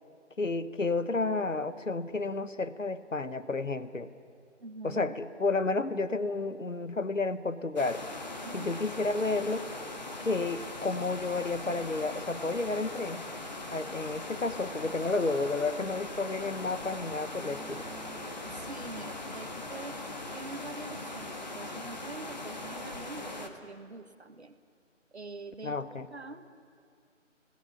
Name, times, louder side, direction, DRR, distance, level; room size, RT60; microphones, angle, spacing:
voice 1, 0.4-4.1 4.8-8.0 8.5-9.7 10.2-13.3 13.7-17.9 25.6-26.1, left 3 dB, 80° left, 12 dB, 1.1 m, -31 dB
voice 2, 4.6-5.1 8.4-8.7 18.5-20.0 20.3-24.6 25.1-26.6, right 3 dB, 60° right, 9 dB, 1.3 m, -45 dB
sound 1, 7.8-23.5, left 2 dB, 35° left, 1.3 m, -40 dB
sound 2, 17.4-20.2, right 3 dB, 10° right, 4.5 m, -51 dB
26.5 x 16.5 x 5.8 m, 2.2 s
figure-of-eight pair, 160°, 38 cm